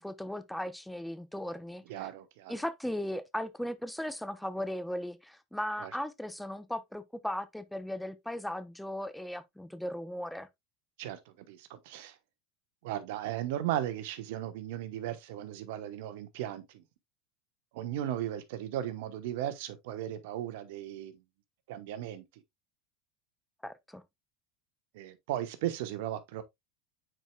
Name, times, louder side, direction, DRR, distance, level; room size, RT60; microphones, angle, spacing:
voice 1, 0.0-2.1 2.5-10.5 23.6-24.0, left 1 dB, 5° left, 0.7 m, -37 dB
voice 2, 1.9-2.6 5.8-5.9 11.0-12.2 12.8-16.8 17.7-21.2 21.7-22.2 24.9-26.4, right 12 dB, 70° right, 1.0 m, -36 dB
9.0 x 4.6 x 2.3 m
hypercardioid pair, 95°, 0 cm